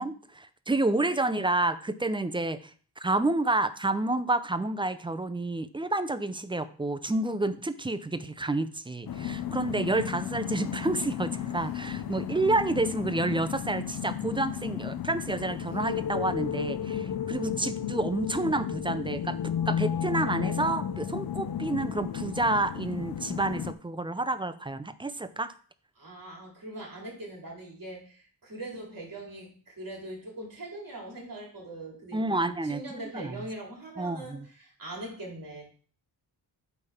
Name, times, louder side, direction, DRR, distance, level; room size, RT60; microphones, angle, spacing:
voice 1, 0.0-2.7 3.0-19.4 19.7-25.5 32.1-32.8 33.1-33.4 34.0-34.5, right 2 dB, 15° right, 12 dB, 0.4 m, -29 dB
sound 1, 9.1-23.7, left 9 dB, 60° left, 0.6 m, -33 dB
voice 2, 25.9-35.6, right 1 dB, 55° right, -1 dB, 2.7 m, -41 dB
8.3 x 3.4 x 5.6 m, 0.41 s
wide cardioid pair, 125°, 40 cm